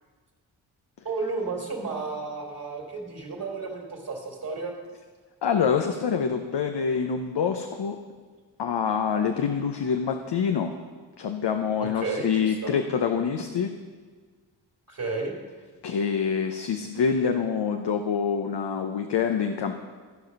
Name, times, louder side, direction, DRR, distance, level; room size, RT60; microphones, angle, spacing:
voice 1, 1.0-4.7 11.8-12.8 14.9-15.3, right 3 dB, 45° right, -3 dB, 2.4 m, -32 dB
voice 2, 5.4-8.0 8.6-10.7 11.2-13.7 15.8-19.8, left 6 dB, 60° left, 5 dB, 0.8 m, -26 dB
15.0 x 4.9 x 5.3 m, 1.5 s
cardioid pair, 40°, 47 cm